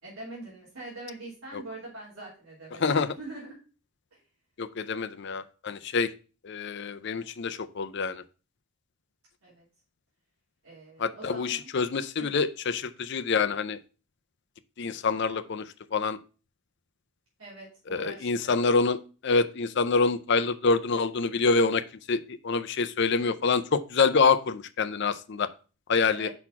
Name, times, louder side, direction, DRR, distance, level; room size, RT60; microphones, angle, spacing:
voice 1, 0.0-3.6 4.1-4.2 9.4-9.6 10.6-11.7 12.2-12.4 17.4-18.6 26.0-26.3, right 2 dB, 75° right, -7 dB, 3.0 m, -43 dB
voice 2, 4.6-6.1 6.4-8.2 11.0-13.8 14.8-16.2 17.9-21.8 22.1-25.5 25.9-26.3, left 4 dB, 50° left, 13 dB, 0.5 m, -26 dB
5.8 x 4.3 x 5.7 m, 0.35 s
head